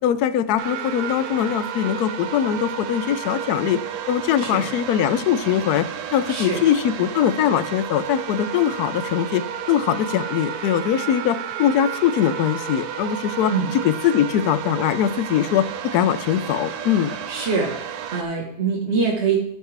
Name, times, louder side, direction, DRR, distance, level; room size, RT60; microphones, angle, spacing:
voice 1, 0.0-3.8 4.1-17.1, left 10 dB, 85° left, 13 dB, 1.1 m, -22 dB
sound 1, 0.6-18.2, right 8 dB, 80° right, 1.1 m, -32 dB
voice 2, 6.3-6.6 13.5-13.7 17.3-17.7 18.1-19.4, right 5 dB, 50° right, -2 dB, 1.5 m, -23 dB
14.0 x 4.9 x 3.3 m, 0.69 s
omnidirectional pair, 1.6 m